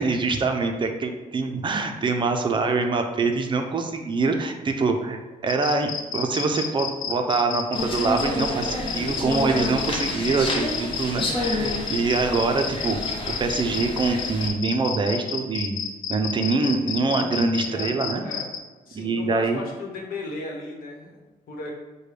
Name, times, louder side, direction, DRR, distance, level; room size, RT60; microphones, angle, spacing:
voice 1, 0.0-13.0 13.3-15.8 16.1-18.2 18.9-19.6, right 3 dB, 35° right, 5 dB, 0.4 m, -24 dB
sound 1, 5.5-18.6, left 6 dB, 65° left, 0.5 m, -31 dB
sound 2, 7.7-14.5, left 1 dB, 35° left, 0.8 m, -29 dB
voice 2, 8.9-9.3 17.7-17.9 18.2-18.5 18.9-21.7, left 2 dB, 85° left, -1 dB, 1.0 m, -36 dB
6.5 x 2.2 x 3.2 m, 1.3 s
cardioid pair, 125°, 15 cm